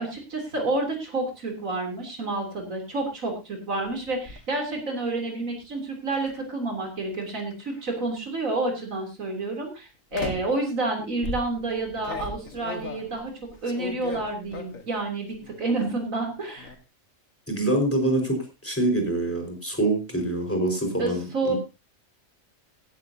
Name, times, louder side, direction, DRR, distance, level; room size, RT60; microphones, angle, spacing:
voice 1, 0.0-13.3 13.6-16.7 21.0-21.5, right 2 dB, 90° right, 2 dB, 3.8 m, -29 dB
sound 1, 3.8-4.4 6.1-6.4 7.1-8.0 8.7-9.0 10.1-10.6 11.2-15.0 15.3-15.9 16.2-16.8, left 3 dB, 85° left, 2.1 m, -38 dB
voice 2, 17.5-18.4 18.6-21.5, right 1 dB, 10° left, 3 dB, 5.0 m, -25 dB
16.0 x 14.5 x 2.8 m, 0.27 s
omnidirectional pair, 1.4 m